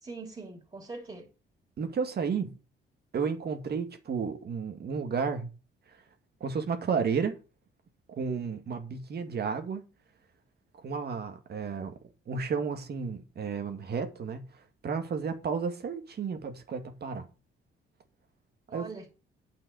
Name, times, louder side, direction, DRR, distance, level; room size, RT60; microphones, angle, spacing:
voice 1, 0.0-1.3 18.7-19.1, right 3 dB, 25° right, 3.7 m, -42 dB
voice 2, 1.8-2.6 3.1-5.5 6.4-7.4 8.1-9.8 10.8-11.9 12.3-14.5 14.8-17.3 18.7-18.9, right 5 dB, 55° right, 2.1 m, -32 dB
9.3 x 5.8 x 6.4 m
cardioid pair, 90°, 20 cm